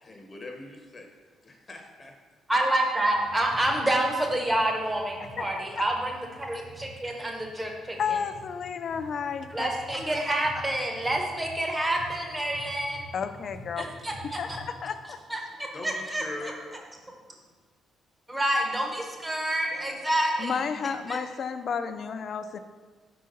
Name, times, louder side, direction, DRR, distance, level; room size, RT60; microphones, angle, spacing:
voice 1, 0.0-1.1 1.4-2.1 15.7-16.6, left 2 dB, 30° left, 2 dB, 0.7 m, -41 dB
voice 2, 2.5-8.2 9.5-13.0 13.8-14.6 15.3-16.5 18.3-20.7 21.1-21.2, right 1 dB, 15° right, 1 dB, 1.0 m, -28 dB
sound 1, 3.1-14.7, right 1 dB, 50° right, 1.8 m, -48 dB
voice 3, 8.0-9.7 13.1-13.9 14.4-15.2 20.4-22.6, left 6 dB, 55° left, 10 dB, 0.4 m, -32 dB
4.8 x 3.8 x 5.1 m, 1.4 s
cardioid pair, 90°, 0 cm